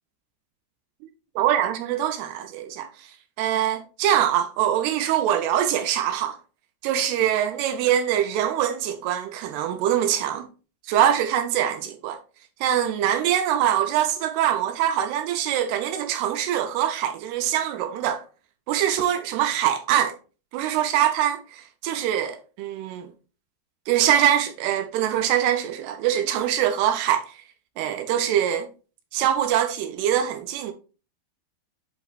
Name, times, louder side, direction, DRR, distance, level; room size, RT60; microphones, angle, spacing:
voice 1, 1.4-3.1 3.4-6.4 6.8-10.5 10.9-12.2 12.6-18.2 18.7-20.2 20.5-23.1 23.9-27.4 27.8-28.7 29.1-30.7, right 10 dB, 80° right, 2.5 m, -23 dB
10.0 x 4.3 x 2.4 m
omnidirectional pair, 4.9 m